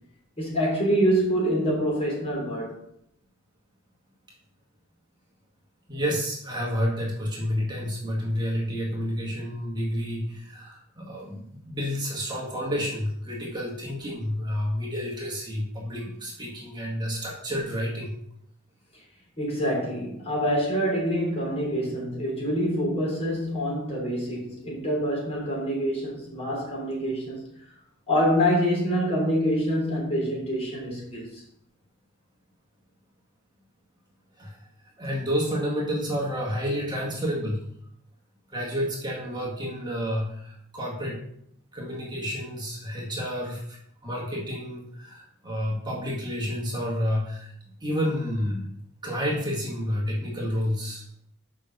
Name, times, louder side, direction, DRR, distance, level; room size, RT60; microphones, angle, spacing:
voice 1, 0.4-2.8 18.9-19.0 19.4-27.4 28.1-31.4, equal, 30° left, 3.8 m, -26 dB
voice 2, 5.9-18.2 34.4-34.7 35.0-37.7 38.5-41.2 41.7-43.8 44.0-47.5 47.8-48.7 49.0-51.0, equal, 20° right, 1.8 m, -30 dB
6.7 x 5.6 x 6.6 m
head